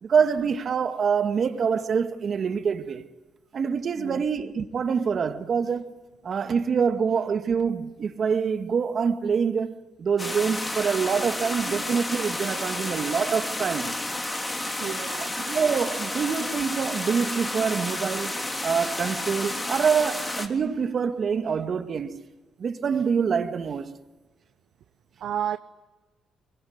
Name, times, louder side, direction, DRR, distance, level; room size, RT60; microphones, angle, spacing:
voice 1, 0.0-3.0 3.5-6.0 6.2-14.0 15.2-18.4 18.6-22.2 22.6-23.9, right 6 dB, 50° right, 2.1 m, -25 dB
sound 1, 10.2-20.5, left 1 dB, 20° left, 3.4 m, -31 dB
voice 2, 14.8-15.4 25.2-25.6, right 10 dB, 70° right, 0.8 m, -31 dB
24.0 x 23.5 x 9.6 m
cardioid pair, 90°, 0 cm